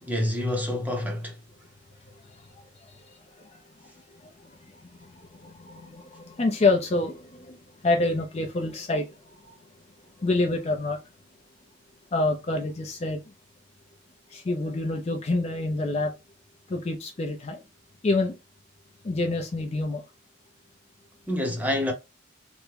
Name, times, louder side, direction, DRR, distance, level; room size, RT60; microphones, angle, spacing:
voice 1, 0.0-1.4 21.3-21.9, left 1 dB, 10° right, 0.7 m, -27 dB
voice 2, 2.3-3.2 3.4-3.6 4.2-7.6 7.8-9.6 10.2-11.0 12.1-13.2 14.3-16.1 16.7-17.6 18.0-18.4 19.0-20.0, left 2 dB, 30° left, 0.4 m, -28 dB
3.4 x 2.1 x 3.2 m
head